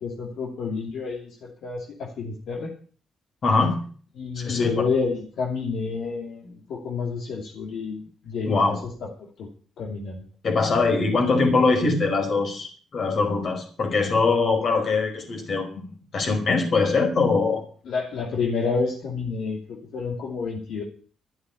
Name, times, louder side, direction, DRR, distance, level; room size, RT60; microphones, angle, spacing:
voice 1, 0.0-2.7 4.2-8.8 9.4-9.5 9.8-10.2 17.9-20.8, left 4 dB, 70° left, -1 dB, 2.9 m, -29 dB
voice 2, 3.4-3.8 4.4-4.9 8.5-8.8 10.4-17.6, left 3 dB, 50° left, 4 dB, 5.0 m, -22 dB
13.5 x 8.4 x 8.5 m, 0.43 s
cardioid pair, 90°, 0 cm